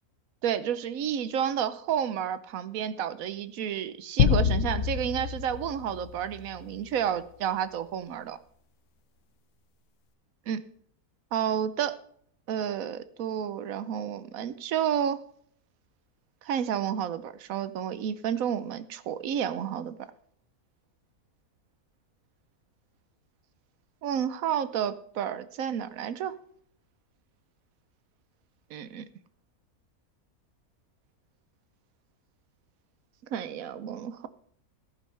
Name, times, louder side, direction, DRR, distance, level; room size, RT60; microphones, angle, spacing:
voice 1, 0.4-8.4 10.5-10.6 11.3-12.0 12.5-15.2 16.4-20.0 24.0-26.4 28.7-29.0 33.3-34.3, right 9 dB, 70° right, 14 dB, 1.1 m, -30 dB
sound 1, 4.2-6.8, left 8 dB, 60° left, 1.0 m, -27 dB
14.5 x 11.0 x 3.3 m, 0.62 s
omnidirectional pair, 1.6 m